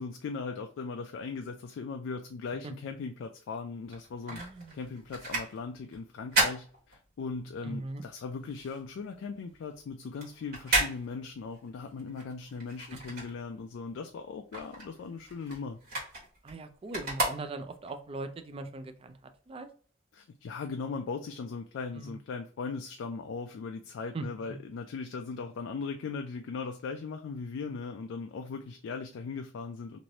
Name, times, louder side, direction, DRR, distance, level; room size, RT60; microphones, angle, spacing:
voice 1, 0.0-4.4 4.7-15.8 20.1-30.0, left 4 dB, 70° left, 5 dB, 0.3 m, -38 dB
sound 1, 3.8-7.5 7.9-13.9 14.2-18.0 18.5-18.6, right 2 dB, 55° right, 1.5 m, -34 dB
voice 2, 4.3-4.8 7.6-8.0 16.4-19.7 21.9-22.2 24.1-24.3, right 2 dB, 30° right, 8 dB, 0.4 m, -40 dB
3.1 x 2.6 x 2.8 m, 0.43 s
head